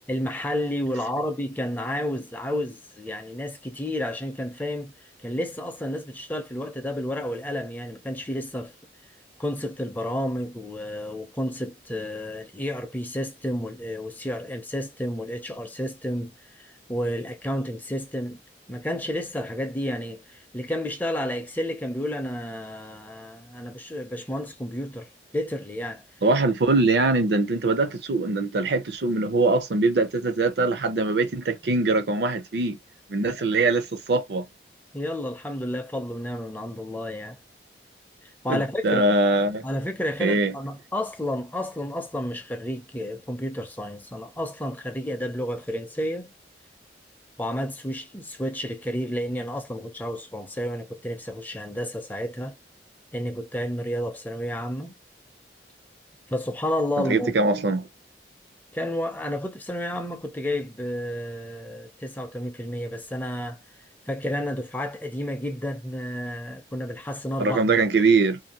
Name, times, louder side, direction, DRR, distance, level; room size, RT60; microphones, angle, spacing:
voice 1, 0.1-4.9 5.2-8.7 9.4-18.4 18.7-25.1 25.3-26.0 34.9-37.4 38.2-39.1 39.6-46.3 47.4-52.6 53.1-55.0 56.3-57.3 58.7-63.6 64.1-67.8, left 1 dB, 10° left, 0.5 m, -31 dB
voice 2, 26.2-32.8 33.1-34.5 38.5-39.6 40.2-40.5 57.0-57.9 67.4-68.4, right 3 dB, 65° right, 0.6 m, -22 dB
2.6 x 2.6 x 2.9 m
head